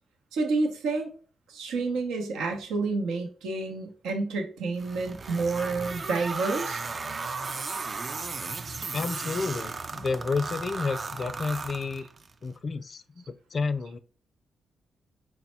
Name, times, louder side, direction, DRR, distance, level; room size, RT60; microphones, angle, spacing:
voice 1, 0.3-1.1 1.5-6.8, right 3 dB, 90° right, 0.8 m, -29 dB
sound 1, 4.8-12.3, right 4 dB, 45° right, 0.4 m, -35 dB
voice 2, 8.9-12.1 12.4-14.0, left 4 dB, 50° left, 0.4 m, -31 dB
4.0 x 2.2 x 4.3 m
supercardioid pair, 60°, 0 cm